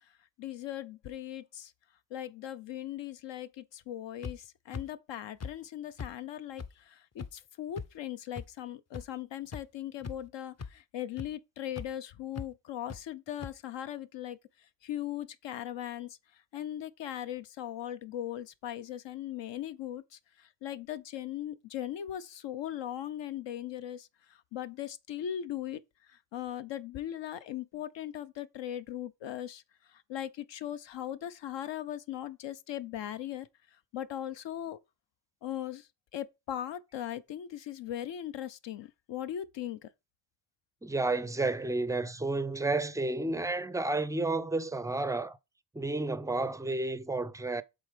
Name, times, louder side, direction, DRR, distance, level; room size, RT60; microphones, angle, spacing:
voice 1, 0.4-1.7 2.1-25.8 26.1-29.6 29.9-33.5 33.9-34.8 35.4-39.9, left 11 dB, 75° left, 0.7 m, -39 dB
sound 1, 4.2-4.3 4.7-4.8 5.4-5.5 6.0-6.1 6.6-6.7 7.2-7.3 7.8-7.9 8.4-8.5 8.9-9.0 9.5-9.6 10.0-10.3 10.6-10.7 11.2-11.3 11.8-11.9 12.3-12.5 12.9-13.0 13.4-13.5, left 5 dB, 35° left, 0.7 m, -39 dB
voice 2, 40.8-45.4 45.7-47.6, right 2 dB, 10° right, 0.4 m, -31 dB
7.7 x 3.5 x 5.1 m
cardioid pair, 105°, 44 cm